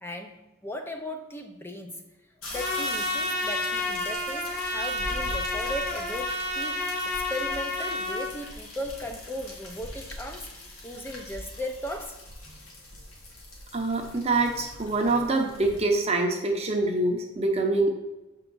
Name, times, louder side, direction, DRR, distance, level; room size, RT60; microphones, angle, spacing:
voice 1, 0.0-2.0 2.5-10.5 10.8-12.2, left 1 dB, 10° left, 5 dB, 0.6 m, -37 dB
sound 1, 2.4-15.8, left 1 dB, 75° left, 1.7 m, -42 dB
Trumpet, 2.5-8.3, left 2 dB, 40° left, 1.3 m, -30 dB
voice 2, 13.7-17.9, right 2 dB, 30° right, 2 dB, 0.7 m, -25 dB
7.0 x 4.5 x 3.9 m, 1.0 s
head